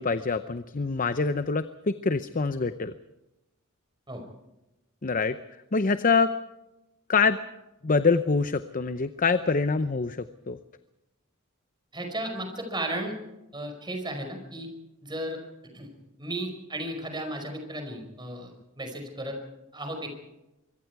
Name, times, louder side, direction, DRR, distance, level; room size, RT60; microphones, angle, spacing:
voice 1, 0.0-2.9 5.0-5.4 5.7-6.3 7.1-7.4 7.8-10.6, left 4 dB, 40° left, 11 dB, 0.7 m, -25 dB
voice 2, 11.9-13.2 13.5-14.7 15.0-15.4 15.7-15.9 16.2-19.4 19.7-20.1, right 1 dB, 20° right, 4 dB, 5.1 m, -34 dB
25.0 x 23.5 x 4.7 m, 0.97 s
head